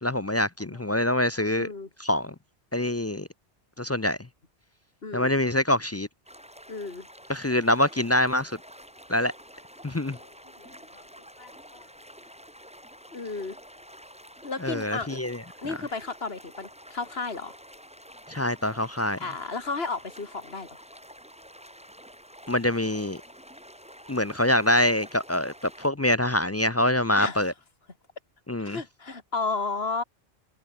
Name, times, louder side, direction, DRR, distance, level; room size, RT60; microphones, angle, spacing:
voice 1, 0.0-1.7 2.0-2.3 2.7-3.3 3.8-4.2 5.1-6.1 7.3-8.6 9.1-9.3 9.8-10.2 14.6-15.8 18.3-19.2 22.5-23.2 24.1-27.5 28.5-28.8, left 1 dB, 25° left, 0.3 m, -25 dB
voice 2, 5.0-5.3 6.7-7.1 10.2-10.3 10.6-11.0 11.4-11.9 13.1-13.6 14.4-15.2 15.6-17.5 19.2-20.8 27.1-27.4 28.6-30.0, left 4 dB, 60° left, 3.0 m, -33 dB
sound 1, 6.3-25.9, equal, 5° right, 5.2 m, -49 dB
omnidirectional pair, 1.1 m